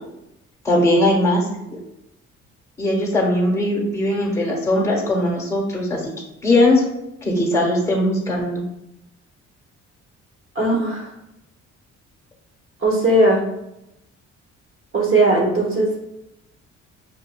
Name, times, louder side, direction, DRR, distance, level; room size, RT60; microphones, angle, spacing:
voice 1, 0.6-1.8 2.8-6.0 6.4-6.8 7.2-8.6, left 1 dB, 10° left, -2 dB, 1.1 m, -19 dB
voice 2, 10.5-11.1 12.8-13.5 14.9-16.0, right 2 dB, 45° right, -1 dB, 1.3 m, -18 dB
5.4 x 2.6 x 2.2 m, 0.86 s
cardioid pair, 90°, 30 cm